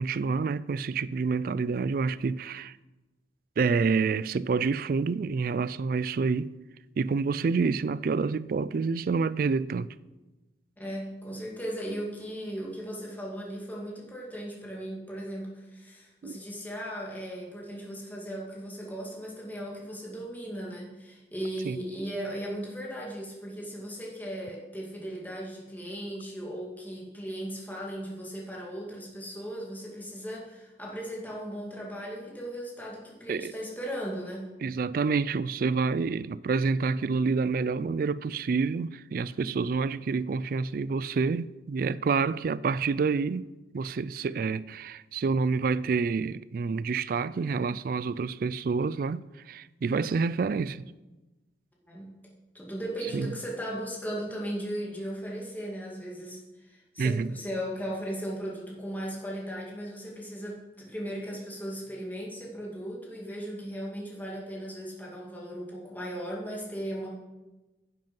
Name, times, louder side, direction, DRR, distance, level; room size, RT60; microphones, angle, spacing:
voice 1, 0.0-2.8 3.6-6.6 7.0-9.9 16.2-16.4 21.6-21.8 33.3-33.5 34.6-43.5 43.7-50.8 53.1-53.3 57.0-57.3, right 4 dB, 55° right, 0.3 m, -28 dB
voice 2, 10.8-34.5 51.8-52.1 52.5-67.1, equal, 10° left, 2.3 m, -37 dB
10.5 x 7.8 x 5.4 m
head